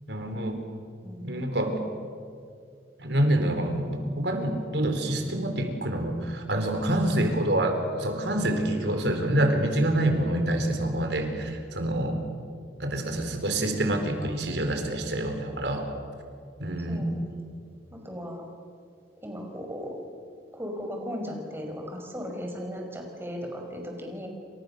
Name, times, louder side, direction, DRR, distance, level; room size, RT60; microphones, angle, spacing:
voice 1, 0.1-0.6 1.2-1.8 3.0-12.2 12.8-15.9 16.6-17.1, right 1 dB, 80° right, 5 dB, 4.5 m, -27 dB
voice 2, 1.0-1.6 6.7-6.8 16.9-17.3 17.9-18.4 19.2-20.0 20.5-24.3, equal, 15° right, 2 dB, 5.3 m, -37 dB
29.5 x 27.0 x 7.0 m, 2.2 s
head